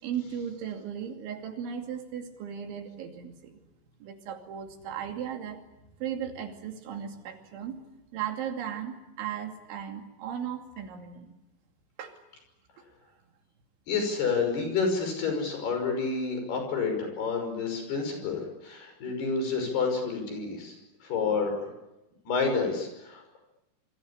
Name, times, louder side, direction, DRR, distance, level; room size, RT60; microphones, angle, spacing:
voice 1, 0.0-3.7 4.0-5.6 6.0-7.8 8.1-11.3 12.0-12.2, right 8 dB, 85° right, 4 dB, 5.0 m, -36 dB
voice 2, 13.9-20.7 21.0-21.7 22.3-23.4, left 4 dB, 60° left, 5 dB, 7.6 m, -29 dB
27.0 x 23.5 x 8.5 m, 0.95 s
omnidirectional pair, 5.2 m